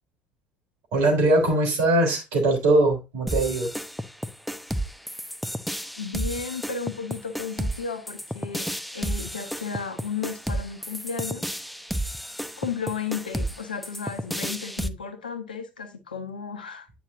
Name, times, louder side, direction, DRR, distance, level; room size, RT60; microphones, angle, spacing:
voice 1, 0.9-3.7, right 2 dB, 60° right, 3.3 m, -21 dB
sound 1, 3.3-14.9, equal, ahead, 0.6 m, -32 dB
voice 2, 6.0-11.5 12.6-16.9, left 6 dB, 80° left, 0.9 m, -34 dB
9.0 x 5.8 x 2.5 m
figure-of-eight pair, 60°, 5 cm